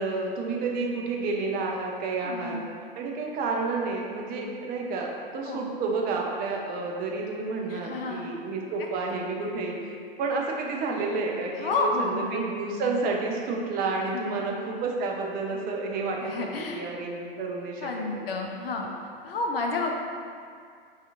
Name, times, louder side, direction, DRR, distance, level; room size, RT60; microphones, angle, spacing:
voice 1, 0.0-2.6 3.0-9.8 10.2-17.8 18.2-18.3, right 3 dB, 30° right, 0 dB, 0.6 m, -30 dB
voice 2, 2.2-2.7 5.5-5.7 7.7-8.3 9.0-9.2 11.5-12.4 14.1-14.6 16.2-16.9 17.8-18.9 19.2-20.0, left 3 dB, 75° left, 1 dB, 0.5 m, -30 dB
5.5 x 2.9 x 2.5 m, 2.2 s
figure-of-eight pair, 90°, 29 cm